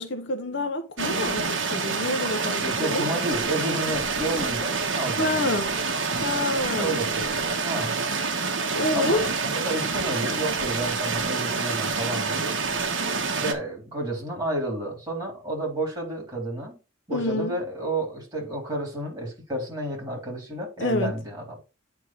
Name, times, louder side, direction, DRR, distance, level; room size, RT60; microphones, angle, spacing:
voice 1, 0.0-3.1 5.2-5.7 6.2-7.0 8.7-9.3 17.1-17.5 20.8-21.1, left 2 dB, 60° left, 0.9 m, -27 dB
sound 1, 1.0-13.5, right 4 dB, 65° right, 1.3 m, -27 dB
voice 2, 2.6-5.7 6.8-7.9 8.9-9.3 9.5-12.6 13.4-16.8 17.1-21.6, right 1 dB, 20° right, 3.8 m, -31 dB
9.3 x 3.6 x 4.5 m
head